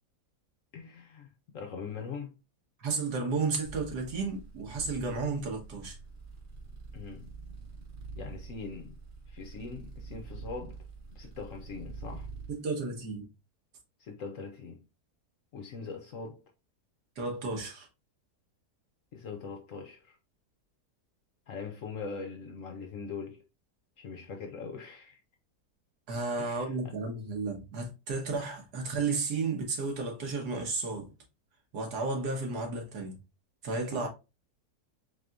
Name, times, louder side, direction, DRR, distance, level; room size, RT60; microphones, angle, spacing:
voice 1, 0.7-2.3 6.9-7.3 8.2-9.0 9.3-10.8 11.1-12.3 14.0-14.8 15.5-16.4 19.1-20.2 21.5-23.4 24.0-25.2 26.4-26.9 33.9-34.1, left 5 dB, 65° left, 0.9 m, -41 dB
voice 2, 2.8-6.0 12.5-13.3 17.2-17.9 26.1-31.1 31.7-33.2 33.6-34.1, right 4 dB, 75° right, 1.7 m, -33 dB
sound 1, 3.6-12.6, right 4 dB, 45° right, 1.2 m, -46 dB
4.2 x 3.4 x 2.4 m
omnidirectional pair, 1.8 m